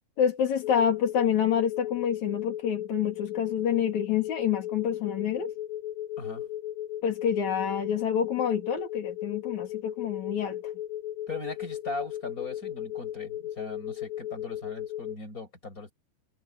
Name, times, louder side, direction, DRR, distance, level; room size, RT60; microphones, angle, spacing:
voice 1, 0.2-5.5 7.0-10.6, left 8 dB, 45° left, 3.8 m, -27 dB
sound 1, 0.6-15.2, left 12 dB, 85° left, 7.0 m, -36 dB
voice 2, 11.3-15.9, left 2 dB, 20° left, 5.5 m, -39 dB
omnidirectional pair, 4.9 m